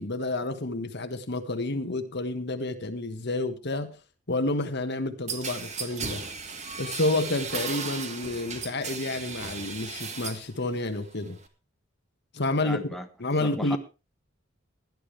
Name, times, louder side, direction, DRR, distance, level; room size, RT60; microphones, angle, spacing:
voice 1, 0.0-3.9 4.3-6.2 6.8-11.4 12.3-12.8 13.2-13.8, left 2 dB, 60° left, 9 dB, 1.5 m, -29 dB
sound 1, 5.3-10.5 10.8-11.5, right 5 dB, 35° right, 1.7 m, -36 dB
voice 2, 12.6-13.1 13.4-13.8, equal, ahead, 5 dB, 1.1 m, -35 dB
17.0 x 11.0 x 3.3 m, 0.30 s
head